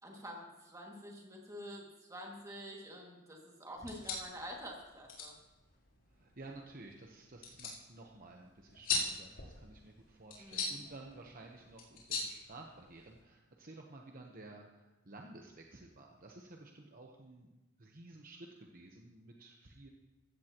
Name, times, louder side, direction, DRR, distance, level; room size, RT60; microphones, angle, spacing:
voice 1, 0.0-5.3 10.4-10.8, equal, 15° right, -1 dB, 2.2 m, -48 dB
sound 1, 3.7-13.2, left 4 dB, 70° left, 3.6 m, -42 dB
voice 2, 6.1-19.9, right 2 dB, 45° right, 1 dB, 1.0 m, -53 dB
15.5 x 14.5 x 3.0 m, 1.1 s
head